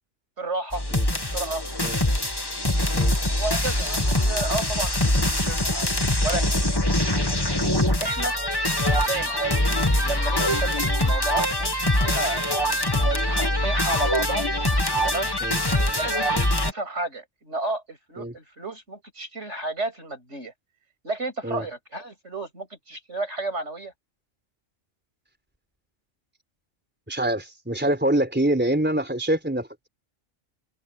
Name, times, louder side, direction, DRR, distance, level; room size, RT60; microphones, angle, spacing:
voice 1, 0.4-0.8 1.1-1.6 3.4-5.9 6.2-6.4 8.0-8.3 9.0-9.4 10.0-14.5 15.0-15.3 15.9-20.5 21.0-23.9, right 2 dB, 60° right, 7.2 m, -32 dB
sound 1, 0.7-16.7, left 1 dB, 20° left, 2.1 m, -23 dB
voice 2, 27.1-29.9, right 1 dB, 10° right, 4.1 m, -25 dB
omnidirectional pair, 1.3 m